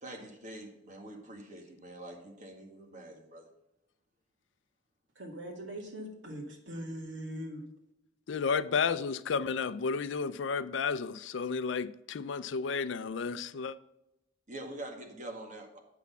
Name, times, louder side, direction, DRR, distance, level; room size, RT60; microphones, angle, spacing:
voice 1, 0.0-3.5 14.5-15.8, right 1 dB, 40° right, 1.8 m, -45 dB
voice 2, 5.2-7.6, equal, 75° right, 2.2 m, -41 dB
voice 3, 8.3-13.8, left 5 dB, 75° left, 0.4 m, -32 dB
8.3 x 6.2 x 5.6 m
head